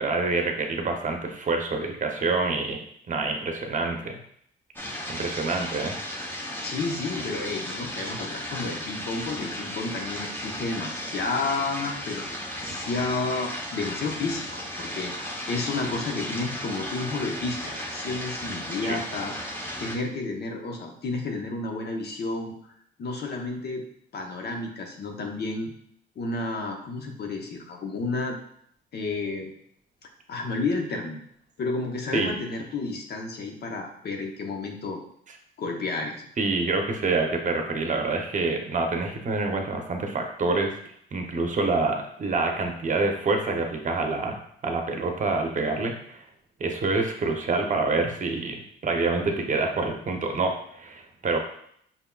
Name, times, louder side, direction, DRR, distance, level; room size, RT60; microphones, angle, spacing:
voice 1, 0.0-2.8 3.1-4.2 5.1-6.0 18.8-19.0 32.1-32.3 36.4-40.7 41.1-46.2 46.6-48.6 48.8-51.4, right 3 dB, 40° right, 3 dB, 0.8 m, -27 dB
sound 1, 4.8-20.0, equal, 10° left, 0.9 m, -35 dB
voice 2, 6.6-22.5 23.0-23.8 24.1-25.7 26.2-28.4 28.9-29.5 30.3-31.2 31.6-35.0 35.6-36.2, left 3 dB, 55° left, 2 dB, 0.9 m, -31 dB
5.7 x 3.6 x 2.3 m, 0.67 s
cardioid pair, 90°, 20 cm